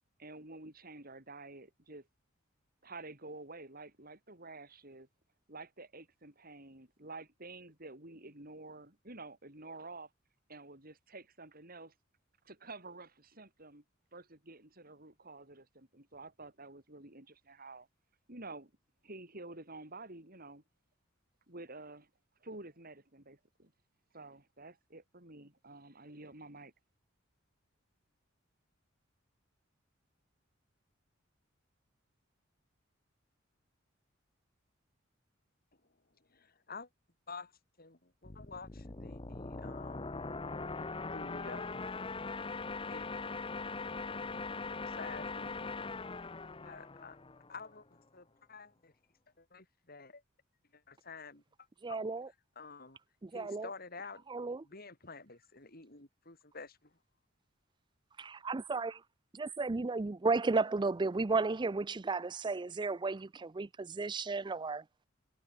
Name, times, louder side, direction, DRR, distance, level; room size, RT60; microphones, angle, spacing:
voice 1, 0.2-2.1 2.8-5.1 5.5-10.1 10.5-11.9 12.4-13.8 14.1-17.9 18.3-18.7 19.0-20.6 21.5-22.1 22.4-23.7 24.1-26.7, right 2 dB, 45° right, 7.0 m, -50 dB
voice 2, 36.3-36.9 37.3-37.5 37.8-40.1 41.1-42.0 42.9-43.2 44.8-46.0 46.6-47.2 47.5-48.9 49.4-50.2 50.7-51.4 51.9-52.0 52.6-53.0 53.3-54.2 54.6-56.9, left 4 dB, 50° left, 6.4 m, -50 dB
sound 1, 38.2-47.8, left 3 dB, 25° left, 0.9 m, -41 dB
voice 3, 51.8-52.3 53.2-53.7 54.3-54.6 58.2-59.0 59.3-64.8, right 3 dB, 25° right, 0.5 m, -33 dB
head